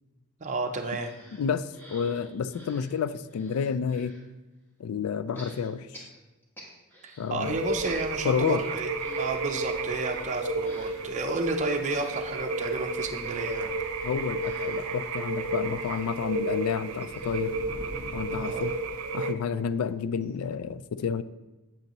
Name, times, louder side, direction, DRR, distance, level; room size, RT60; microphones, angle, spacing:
voice 1, 0.4-1.1 7.0-8.9 9.2-13.7 18.3-18.7, right 3 dB, 35° right, 3 dB, 0.5 m, -32 dB
sound 1, 1.0-4.3 5.3-7.3 7.6-19.5 19.9-20.0 20.2-20.3, equal, 10° left, 1.2 m, -51 dB
voice 2, 1.4-4.2 4.8-6.0 7.2-7.7 8.2-8.6 14.0-17.6 18.1-18.8 19.1-21.2, left 6 dB, 85° left, 14 dB, 0.3 m, -30 dB
sound 2, 7.4-19.1, equal, 45° left, 2.0 m, -48 dB
sound 3, 7.4-19.3, right 2 dB, 85° right, 0.6 m, -32 dB
7.8 x 7.1 x 3.0 m, 1.1 s
head